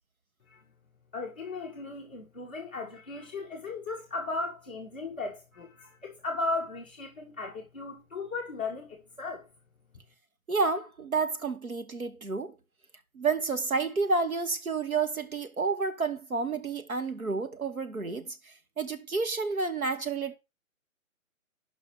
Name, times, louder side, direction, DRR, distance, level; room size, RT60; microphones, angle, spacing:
voice 1, 1.1-9.5, left 3 dB, 5° left, 0.5 m, -36 dB
voice 2, 10.5-12.5 13.1-20.3, right 4 dB, 90° right, 1.6 m, -30 dB
6.2 x 5.5 x 7.0 m
figure-of-eight pair, 145°, 41 cm